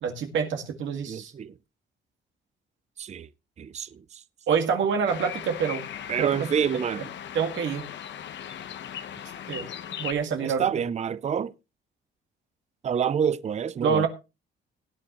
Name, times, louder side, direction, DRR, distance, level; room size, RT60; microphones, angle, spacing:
voice 1, 0.0-1.3 4.5-5.8 6.2-6.5 7.3-7.9 9.5-9.7 10.0-10.6 13.8-14.1, right 6 dB, 75° right, 2.0 m, -26 dB
voice 2, 0.9-1.5 3.0-3.3 3.6-4.2 6.1-7.0 10.4-11.5 12.8-14.1, right 8 dB, 35° right, 0.5 m, -28 dB
sound 1, 5.1-10.1, left 9 dB, 65° left, 1.1 m, -38 dB
18.0 x 9.1 x 3.0 m
cardioid pair, 90°, 20 cm